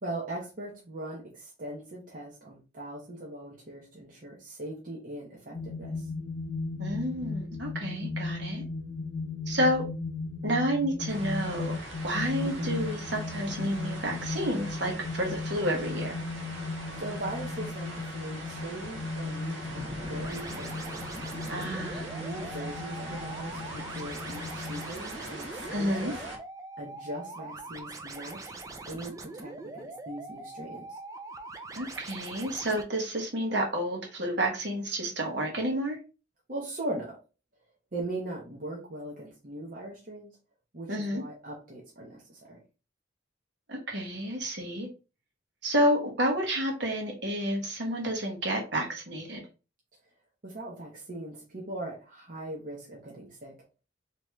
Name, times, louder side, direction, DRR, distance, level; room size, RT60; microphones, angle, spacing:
voice 1, 0.0-6.1 12.4-12.7 17.0-20.8 22.1-26.2 26.8-28.5 28.9-31.0 36.5-37.2 37.9-40.3 40.7-42.6 50.4-53.6, right 1 dB, 45° right, -3 dB, 0.9 m, -40 dB
sound 1, 5.5-24.9, left 3 dB, 70° left, 0.7 m, -37 dB
voice 2, 6.8-8.6 9.5-9.8 10.4-11.7 12.0-16.1 21.5-22.1 25.7-26.1 31.7-36.0 40.9-41.2 43.7-44.9 45.6-49.4, equal, 65° right, 1 dB, 1.2 m, -30 dB
sound 2, 11.1-26.4, right 1 dB, 85° right, 1.0 m, -42 dB
sound 3, 20.2-32.8, right 3 dB, 20° right, 0.4 m, -43 dB
3.5 x 2.9 x 3.1 m, 0.32 s
head